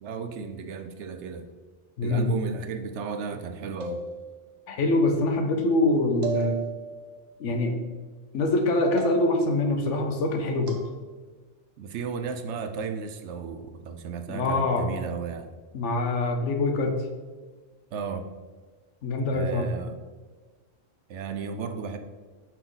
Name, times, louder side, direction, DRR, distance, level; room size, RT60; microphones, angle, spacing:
voice 1, 0.0-1.5 2.0-4.0 11.8-15.5 17.9-18.3 19.3-20.0 21.1-22.0, right 6 dB, 75° right, 8 dB, 0.9 m, -34 dB
voice 2, 2.0-2.3 4.7-6.6 7.4-7.8 8.3-10.8 14.3-14.9 15.7-17.0 19.0-19.7, left 2 dB, 80° left, 4 dB, 1.2 m, -24 dB
sound 1, 3.8-4.6 6.2-7.2 9.0-9.6 10.7-10.9, right 4 dB, 40° right, 0.9 m, -34 dB
5.9 x 5.4 x 3.9 m, 1.4 s
omnidirectional pair, 1.2 m